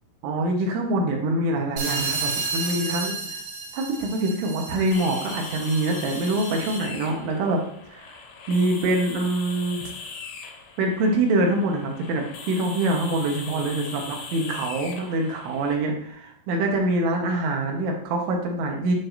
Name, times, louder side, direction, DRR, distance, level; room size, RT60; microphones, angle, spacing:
voice 1, 0.2-3.4 3.7-7.6 7.9-8.2 8.5-9.8 10.8-18.9, right 2 dB, 75° right, 1 dB, 3.4 m, -25 dB
sound 1, 1.8-7.0, right 4 dB, 50° right, 2.4 m, -32 dB
sound 2, 4.9-15.7, left 5 dB, 85° left, 2.2 m, -40 dB
10.0 x 6.2 x 2.6 m, 0.65 s
omnidirectional pair, 5.9 m